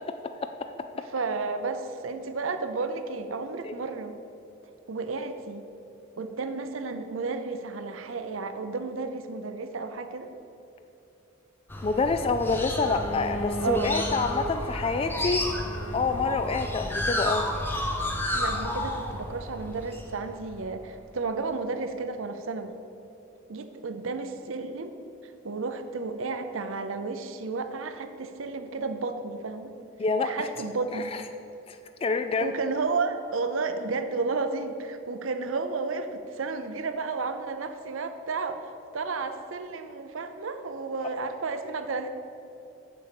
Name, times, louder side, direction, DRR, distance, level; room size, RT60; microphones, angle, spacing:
voice 1, 0.9-4.1 4.9-5.6 6.2-10.3 13.6-13.9 18.3-22.7 23.5-24.9 25.2-29.7 30.2-31.2 32.4-42.1, right 4 dB, 75° right, 9 dB, 0.6 m, -32 dB
sound 1, 11.7-20.8, left 1 dB, 10° left, 0.8 m, -32 dB
voice 2, 11.8-15.4 15.9-17.5 30.0-30.5 30.9-31.2 31.7-32.5, left 4 dB, 25° left, 7 dB, 0.3 m, -27 dB
Bowed string instrument, 12.7-17.4, right 1 dB, 70° left, 1.5 m, -38 dB
7.2 x 6.9 x 7.0 m, 2.8 s
head